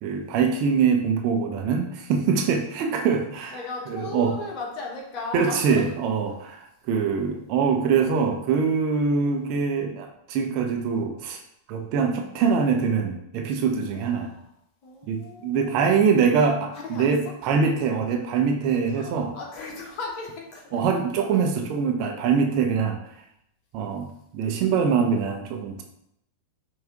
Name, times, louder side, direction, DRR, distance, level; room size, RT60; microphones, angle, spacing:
voice 1, 0.0-3.6 3.9-4.3 5.3-11.4 11.7-14.3 15.1-19.3 20.7-23.0 23.7-25.8, right 6 dB, 45° right, 3 dB, 0.6 m, -23 dB
voice 2, 3.5-5.9 13.9-14.4 14.8-16.0 16.7-17.1 18.9-20.8 24.5-24.6, left 3 dB, 40° left, -1 dB, 1.2 m, -36 dB
5.6 x 2.6 x 3.6 m, 0.75 s
figure-of-eight pair, 90°, 0 cm